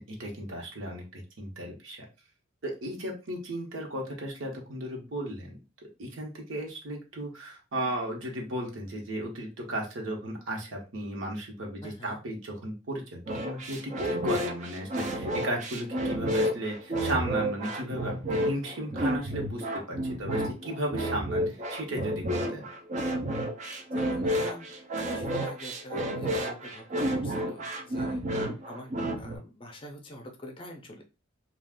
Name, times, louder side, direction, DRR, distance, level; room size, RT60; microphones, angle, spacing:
voice 1, 0.1-2.1 2.6-5.6 6.0-22.7, right 1 dB, 85° right, 0 dB, 1.0 m, -35 dB
voice 2, 11.8-12.2 23.9-31.0, left 1 dB, 25° left, 3 dB, 0.5 m, -45 dB
sound 1, 13.3-29.4, equal, 35° right, 0.5 m, -30 dB
2.4 x 2.3 x 3.6 m, 0.29 s
head